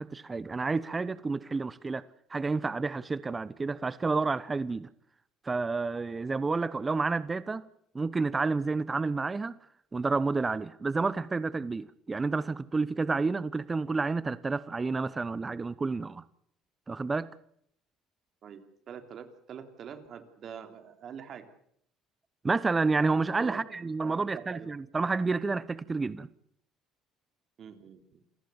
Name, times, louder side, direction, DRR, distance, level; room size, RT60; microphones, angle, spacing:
voice 1, 0.0-2.0 2.3-4.9 5.4-7.7 7.9-9.6 9.9-16.2 16.9-17.3 22.4-26.3, right 4 dB, 25° right, 0.9 m, -30 dB
voice 2, 18.4-21.4 23.4-23.6 24.0-24.7 27.6-28.2, right 8 dB, 55° right, 3.3 m, -45 dB
28.0 x 15.5 x 7.1 m
supercardioid pair, 80°, 0 cm